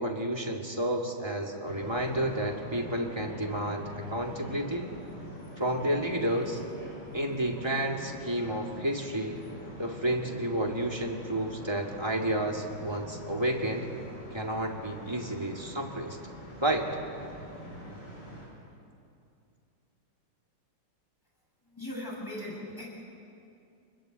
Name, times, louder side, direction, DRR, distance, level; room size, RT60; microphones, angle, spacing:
voice 1, 0.0-4.9 5.6-6.6 7.1-9.4 9.8-13.9 14.3-16.2 16.6-16.9, right 1 dB, 15° right, 1 dB, 2.1 m, -31 dB
sound 1, 1.6-18.5, equal, 55° left, 6.6 m, -44 dB
voice 2, 21.7-22.9, left 1 dB, 10° left, -4 dB, 8.0 m, -39 dB
27.5 x 21.0 x 8.1 m, 2.5 s
omnidirectional pair, 2.2 m